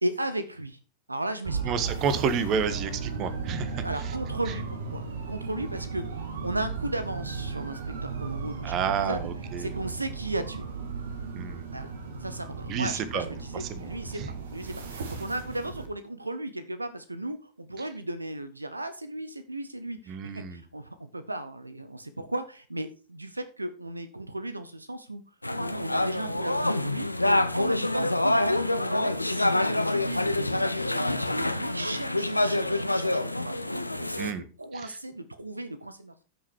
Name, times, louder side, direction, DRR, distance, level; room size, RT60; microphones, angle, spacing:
voice 1, 0.0-0.8 1.1-1.7 3.8-9.2 9.6-10.7 11.7-11.9 12.2-25.2 25.6-28.1 28.8-33.6 33.9-36.2, right 1 dB, 85° right, 12 dB, 0.7 m, -36 dB
sound 1, 1.4-15.9, right 5 dB, 65° right, 1.9 m, -36 dB
voice 2, 1.6-3.8 8.6-9.7 11.3-11.7 12.7-13.3 13.7-13.9 14.1-14.3 20.1-20.6 34.2-34.4, right 6 dB, 35° right, 13 dB, 1.4 m, -30 dB
sound 2, 25.4-34.3, left 1 dB, 85° left, 0.7 m, -26 dB
13.0 x 6.2 x 4.6 m, 0.35 s
figure-of-eight pair, 90°, 0 cm